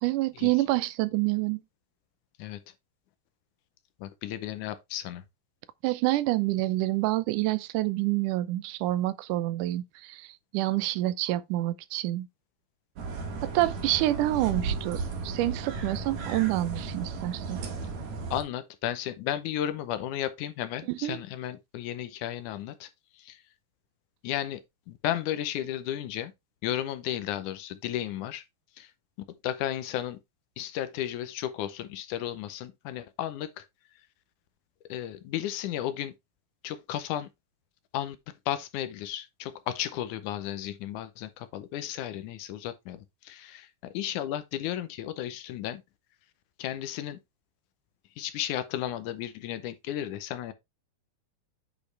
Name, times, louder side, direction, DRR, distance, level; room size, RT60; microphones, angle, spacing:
voice 1, 0.0-1.6 5.8-12.3 13.4-17.6 20.9-21.2, right 17 dB, 85° right, 2.2 m, -27 dB
voice 2, 4.0-5.2 18.3-23.4 24.2-24.6 24.9-26.3 26.6-28.4 28.8-28.9 29.3-30.2 30.6-33.7 34.9-36.1 36.6-37.3 37.9-38.2 38.5-45.8 46.6-47.2 48.2-50.5, left 12 dB, 80° left, 2.2 m, -34 dB
sound 1, 13.0-18.4, right 4 dB, 65° right, 2.9 m, -35 dB
8.5 x 5.0 x 3.3 m
omnidirectional pair, 3.6 m